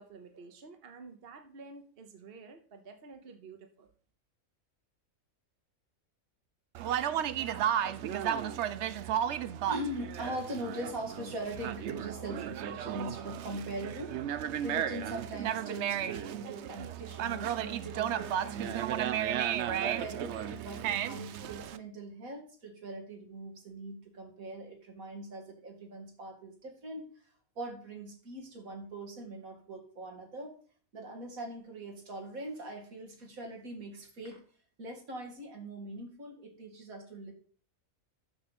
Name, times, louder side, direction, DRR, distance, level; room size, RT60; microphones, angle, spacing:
voice 1, 0.0-3.9, right 4 dB, 45° right, 6 dB, 1.2 m, -50 dB
Conversation, 6.7-21.8, right 10 dB, 65° right, 0.8 m, -34 dB
voice 2, 9.7-27.2 27.6-30.6 30.9-34.4 34.8-37.3, right 1 dB, 80° right, 2 dB, 2.4 m, -41 dB
7.1 x 6.5 x 5.4 m, 0.43 s
omnidirectional pair, 1.5 m